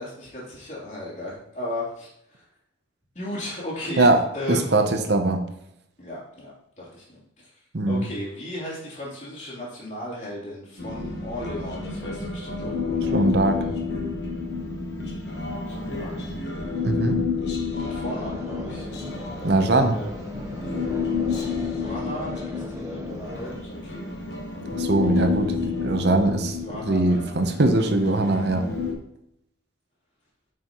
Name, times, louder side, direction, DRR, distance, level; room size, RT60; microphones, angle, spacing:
voice 1, 0.0-2.4 3.1-4.7 6.0-7.2 7.8-13.7 15.7-16.3 17.7-18.9 19.4-20.1 21.7-24.1 26.2-27.2, left 1 dB, 40° left, -6 dB, 3.2 m, -36 dB
voice 2, 4.5-5.4 7.7-8.0 13.1-13.7 16.8-17.2 19.4-19.9 24.7-26.6 26.9-28.6, right 2 dB, 60° right, 6 dB, 0.8 m, -21 dB
Human voice, 10.8-28.9, left 5 dB, 60° left, 1.3 m, -30 dB
sound 1, 18.0-23.5, equal, 15° right, 1.0 m, -39 dB
8.7 x 6.3 x 3.0 m, 0.78 s
head